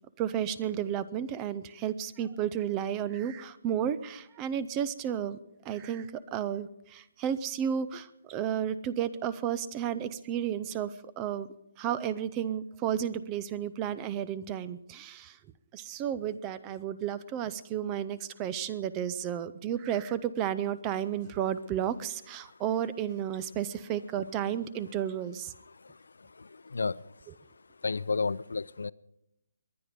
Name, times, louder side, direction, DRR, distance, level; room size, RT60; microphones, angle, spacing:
voice 1, 0.2-5.4 5.6-11.5 11.8-15.4 15.7-25.5, right 9 dB, 15° right, 16 dB, 0.4 m, -32 dB
voice 2, 25.7-27.1 27.8-28.9, left 4 dB, 90° left, 20 dB, 0.5 m, -33 dB
22.5 x 9.5 x 5.1 m, 0.83 s
hypercardioid pair, 175°, 0 cm